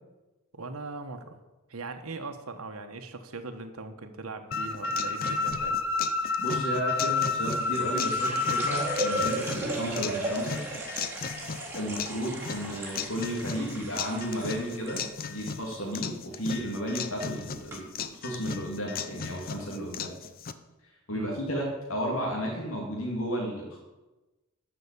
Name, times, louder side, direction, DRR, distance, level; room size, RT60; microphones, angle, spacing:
voice 1, 0.5-1.4 1.7-5.8 21.1-21.4, right 3 dB, 85° right, 6 dB, 1.2 m, -40 dB
sound 1, 4.5-9.3, left 4 dB, 65° left, 1.4 m, -29 dB
sound 2, 4.5-20.5, left 6 dB, 45° left, 0.7 m, -38 dB
sound 3, 5.2-5.6 7.1-15.0 15.3-15.9 16.3-16.6 17.3-17.4 17.7-17.8, right 1 dB, 10° right, 3.4 m, -36 dB
voice 2, 6.4-10.6 11.7-15.0 15.3-17.9 18.2-20.1 21.1-23.8, equal, 80° left, -2 dB, 2.4 m, -33 dB
12.5 x 5.9 x 8.3 m, 1.1 s
head